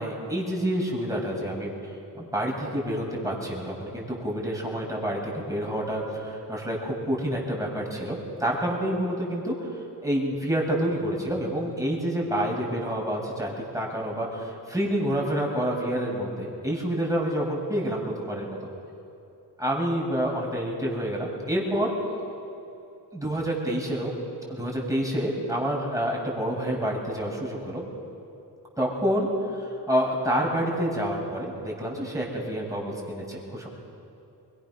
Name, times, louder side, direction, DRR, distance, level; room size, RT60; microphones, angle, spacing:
voice 1, 0.0-1.7 2.1-9.5 10.0-18.6 19.6-21.9 23.1-24.1 24.5-27.8 28.8-33.7, equal, 5° right, -2 dB, 7.4 m, -28 dB
25.0 x 21.0 x 6.6 m, 2.8 s
cardioid pair, 65°, 45 cm